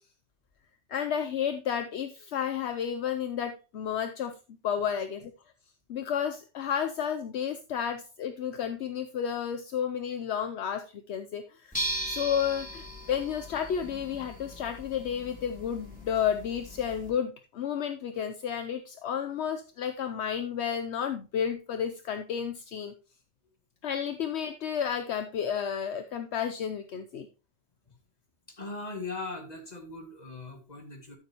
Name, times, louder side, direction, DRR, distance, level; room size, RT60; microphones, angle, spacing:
voice 1, 0.9-4.3 4.6-5.3 5.9-11.7 12.1-22.9 23.8-27.3, left 8 dB, 70° left, 9 dB, 1.0 m, -31 dB
sound 1, 11.7-17.1, right 1 dB, 5° left, 3.0 m, -38 dB
voice 2, 28.5-31.2, left 3 dB, 35° left, 2 dB, 2.2 m, -39 dB
13.0 x 6.8 x 2.9 m, 0.32 s
omnidirectional pair, 1.2 m